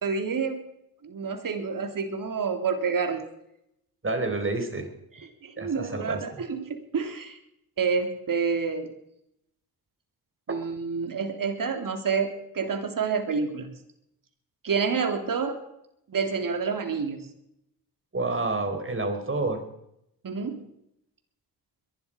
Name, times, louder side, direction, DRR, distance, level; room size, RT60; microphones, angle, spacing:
voice 1, 0.0-0.6 1.0-3.2 5.4-7.4 7.8-8.9 10.5-13.7 14.6-15.6 16.1-17.2 20.2-20.6, right 5 dB, 50° right, 6 dB, 3.3 m, -28 dB
voice 2, 4.0-4.9 5.6-6.2 18.1-19.6, right 2 dB, 30° right, 6 dB, 4.4 m, -28 dB
22.0 x 11.5 x 5.2 m, 0.80 s
supercardioid pair, 50°, 41 cm